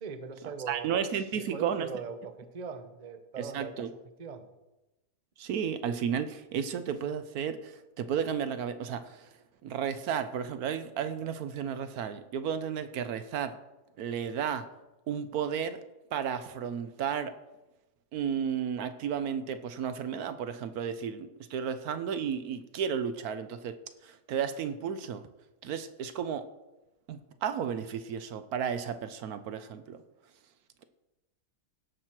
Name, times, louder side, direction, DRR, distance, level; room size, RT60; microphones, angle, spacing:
voice 1, 0.0-1.0 1.3-3.9 4.2-4.5, right 5 dB, 35° right, 8 dB, 0.7 m, -40 dB
voice 2, 0.7-1.9 3.5-3.9 5.4-9.3 9.6-13.6 14.0-14.7 15.1-15.8 16.1-17.3 18.1-23.8 24.0-25.2 25.6-26.5 27.1-30.0, right 8 dB, 70° right, 11 dB, 1.1 m, -33 dB
17.0 x 6.2 x 4.4 m, 1.0 s
omnidirectional pair, 1.7 m